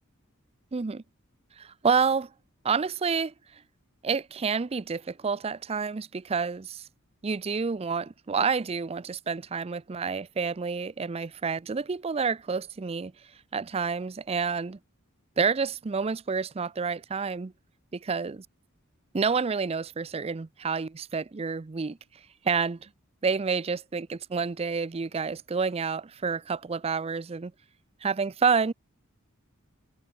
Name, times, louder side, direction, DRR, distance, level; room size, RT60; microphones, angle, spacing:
voice 1, 0.7-1.0 1.6-2.3 2.6-3.3 4.0-6.7 7.2-13.1 13.5-14.8 15.4-17.5 17.9-18.4 19.1-22.0 22.4-22.9 23.2-27.5 28.0-28.7, right 5 dB, 30° right, 0.4 m, -29 dB
head